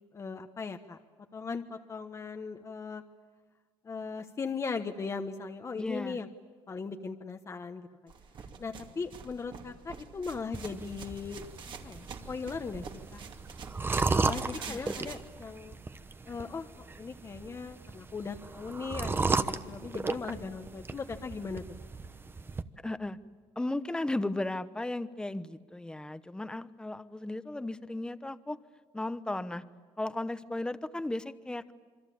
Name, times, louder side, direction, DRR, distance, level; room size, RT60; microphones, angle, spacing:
voice 1, 0.1-1.0 1.3-3.0 3.8-6.3 6.7-8.1 8.6-11.4 11.8-12.8 13.1-13.2 14.2-15.8 16.3-21.6, left 5 dB, 30° left, 6 dB, 1.2 m, -38 dB
voice 2, 5.8-6.2 14.7-15.0 22.8-23.2 23.6-28.6 28.9-29.6 30.0-31.7, left 2 dB, 10° left, 13 dB, 1.0 m, -35 dB
sound 1, 8.1-15.2, right 6 dB, 50° right, 2.6 m, -46 dB
sound 2, 10.5-22.6, right 3 dB, 20° right, 1.1 m, -35 dB
27.5 x 24.5 x 8.6 m, 1.5 s
cardioid pair, 125°, 10 cm